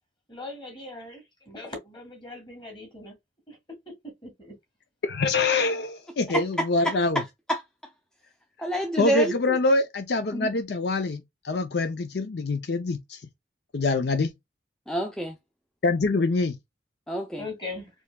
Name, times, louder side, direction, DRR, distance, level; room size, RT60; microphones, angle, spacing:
voice 1, 0.3-3.2 3.5-3.9 4.2-4.6 17.4-17.9, left 2 dB, 25° left, 1.9 m, -40 dB
voice 2, 5.0-7.2 9.0-13.2 13.7-14.3 15.8-16.6, left 3 dB, 65° left, 0.5 m, -25 dB
voice 3, 8.6-9.3 10.3-10.5 14.9-15.4 17.1-17.4, right 1 dB, 5° left, 0.4 m, -27 dB
4.4 x 2.8 x 2.2 m
head